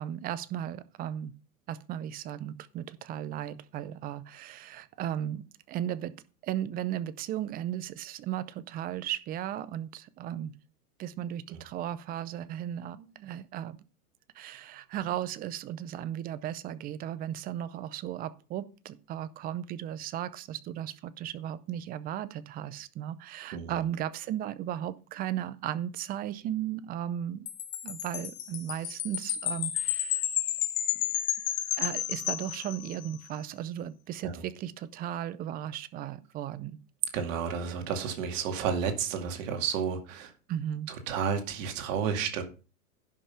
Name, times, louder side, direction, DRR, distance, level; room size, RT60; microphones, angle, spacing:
voice 1, 0.0-1.3 1.7-6.1 6.4-10.5 11.0-13.8 14.3-27.5 27.8-30.2 31.8-36.8 40.5-40.9, right 11 dB, 20° right, 0.5 m, -36 dB
Wind chime, 27.5-33.1, left 13 dB, 45° left, 2.0 m, -32 dB
voice 2, 37.1-40.3 41.1-42.4, right 7 dB, 55° right, 2.3 m, -31 dB
11.0 x 5.8 x 5.7 m
hypercardioid pair, 130°, 45 cm